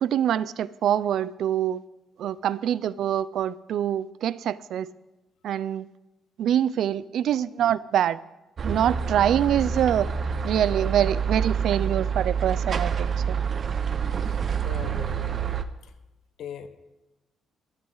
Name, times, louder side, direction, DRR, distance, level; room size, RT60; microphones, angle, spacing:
voice 1, 0.0-1.8 2.2-4.9 5.4-5.9 6.4-8.2 8.6-10.1 10.4-13.4, right 10 dB, 75° right, 18 dB, 0.4 m, -25 dB
sound 1, 8.6-15.6, right 6 dB, 45° right, 0.8 m, -27 dB
voice 2, 14.2-15.9 16.4-16.7, left 8 dB, 80° left, 9 dB, 1.2 m, -42 dB
13.5 x 13.0 x 4.0 m, 1.0 s
cardioid pair, 90°, 0 cm